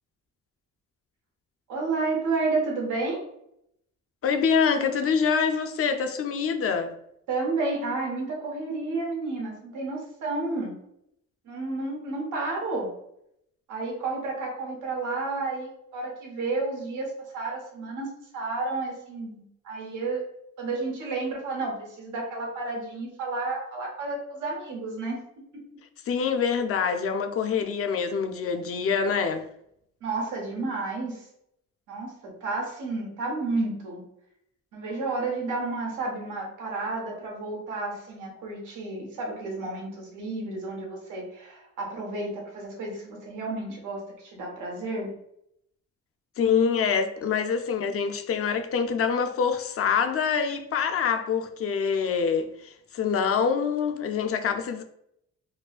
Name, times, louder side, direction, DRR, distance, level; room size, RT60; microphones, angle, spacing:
voice 1, 1.7-3.2 7.3-10.7 11.4-12.9 13.7-18.1 18.3-20.2 20.6-25.2 30.0-31.2 31.9-34.0 34.7-45.1, right 3 dB, 80° right, 1.2 m, -31 dB
voice 2, 4.2-6.9 26.1-29.5 46.4-54.8, left 6 dB, 50° left, 0.5 m, -25 dB
4.7 x 2.2 x 2.4 m
cardioid pair, 90°, 30 cm